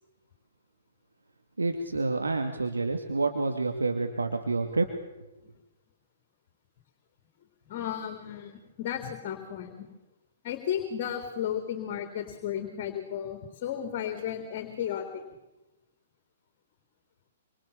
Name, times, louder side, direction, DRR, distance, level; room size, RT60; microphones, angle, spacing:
voice 1, 1.6-4.9, right 3 dB, 80° right, 5 dB, 2.5 m, -28 dB
voice 2, 7.7-9.9 10.4-15.2, left 9 dB, 45° left, 7 dB, 3.6 m, -34 dB
27.0 x 25.5 x 7.3 m, 0.99 s
figure-of-eight pair, 115°, 0 cm